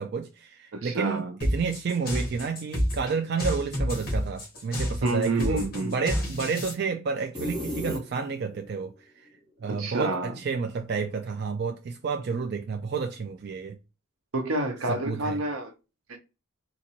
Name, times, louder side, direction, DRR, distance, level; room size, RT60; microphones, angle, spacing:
voice 1, 0.0-8.9 9.6-13.8 14.9-15.4, right 5 dB, 50° right, 0.3 m, -30 dB
voice 2, 0.7-1.4 5.0-5.9 9.7-10.3 14.3-15.7 16.1-16.2, right 2 dB, 80° right, 0.8 m, -28 dB
sound 1, 1.4-6.7, equal, 45° left, 1.7 m, -29 dB
sound 2, 7.3-8.6, left 1 dB, 20° right, 1.3 m, -33 dB
3.9 x 2.6 x 2.8 m
head